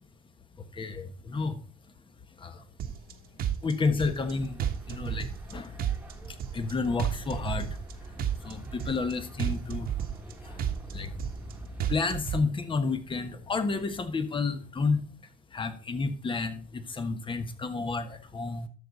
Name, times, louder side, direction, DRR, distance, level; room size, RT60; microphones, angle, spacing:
voice 1, 0.6-1.6 2.4-2.6 3.6-5.8 6.3-7.8 8.4-9.9 10.4-10.5 10.9-11.1 11.9-15.0 15.5-18.7, left 4 dB, 30° left, 9 dB, 1.3 m, -31 dB
Car / Idling, 1.8-14.8, left 2 dB, 60° left, 3.1 m, -56 dB
sound 1, 2.8-3.1 3.4-4.3 4.6-5.5 5.8-6.7 7.0-7.9 8.2-9.1 9.4-10.3 10.6-11.5 11.8-12.4, right 10 dB, 60° right, 1.2 m, -31 dB
sound 2, 4.2-11.9, right 2 dB, 10° right, 1.5 m, -44 dB
12.0 x 6.6 x 4.1 m, 0.42 s
cardioid pair, 110°, 17 cm